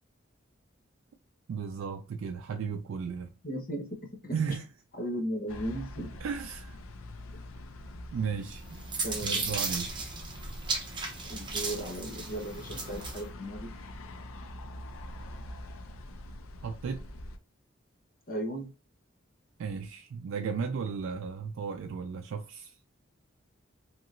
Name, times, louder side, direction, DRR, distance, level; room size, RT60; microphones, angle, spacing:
voice 1, 1.5-3.3 4.3-4.7 6.2-6.8 8.1-8.8 9.2-9.9 16.6-17.0 19.6-22.8, right 6 dB, 75° right, 0.3 m, -35 dB
voice 2, 3.4-3.9 4.2-4.4 5.0-6.1 9.0-9.4 11.3-13.7 18.3-18.7, right 1 dB, 45° left, 0.9 m, -36 dB
sound 1, 5.5-17.4, left 1 dB, 90° left, 0.5 m, -44 dB
sound 2, 8.5-13.2, right 4 dB, 20° right, 0.6 m, -35 dB
2.9 x 2.8 x 2.5 m
head